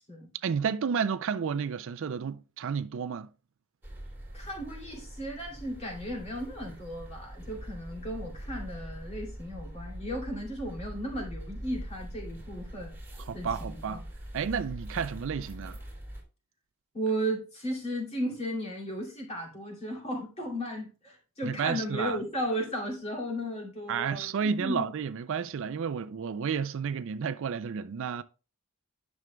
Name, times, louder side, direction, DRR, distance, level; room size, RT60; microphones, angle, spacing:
voice 1, 0.4-3.3 13.3-14.0 14.3-15.8 21.4-22.2 23.9-28.2, right 6 dB, 60° right, 0.4 m, -31 dB
sound 1, 3.8-16.2, right 1 dB, 10° right, 2.8 m, -42 dB
voice 2, 4.3-12.9 13.3-14.0 16.9-24.9, equal, 30° left, 2.4 m, -35 dB
10.5 x 6.3 x 2.2 m
head